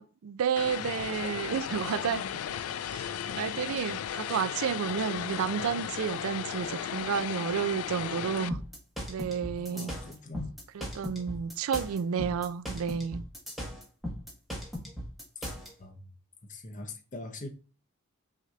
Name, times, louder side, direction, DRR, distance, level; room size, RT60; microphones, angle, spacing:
voice 1, 0.0-2.2 2.9-8.6 9.1-9.9 10.7-13.2, right 7 dB, 75° right, 0.4 m, -31 dB
Vehicle, 0.6-8.5, left 9 dB, 90° left, 0.3 m, -35 dB
voice 2, 1.7-2.1 9.6-10.6 15.4-15.5 15.8-16.1 16.4-17.5, left 2 dB, 35° left, 0.8 m, -43 dB
sound 1, 8.5-15.7, equal, ahead, 1.2 m, -38 dB
5.9 x 2.9 x 2.4 m
head